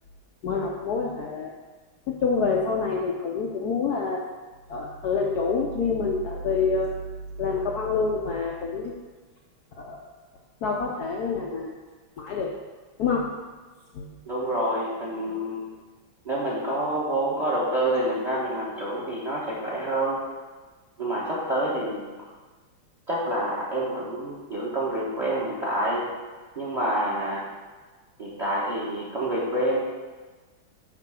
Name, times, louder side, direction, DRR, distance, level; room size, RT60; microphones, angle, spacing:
voice 1, 0.4-1.5 2.1-4.2 4.7-7.1 7.4-9.0 9.8-10.1 10.6-11.7 12.2-12.5 13.0-13.4 13.9-14.2, left 4 dB, 70° left, -1 dB, 0.9 m, -27 dB
voice 2, 14.2-15.6 16.2-20.2 21.0-22.3 23.1-26.0 26.5-27.4 28.2-29.8, right 1 dB, 25° right, -6 dB, 1.0 m, -27 dB
8.8 x 3.0 x 6.1 m, 1.3 s
omnidirectional pair, 2.4 m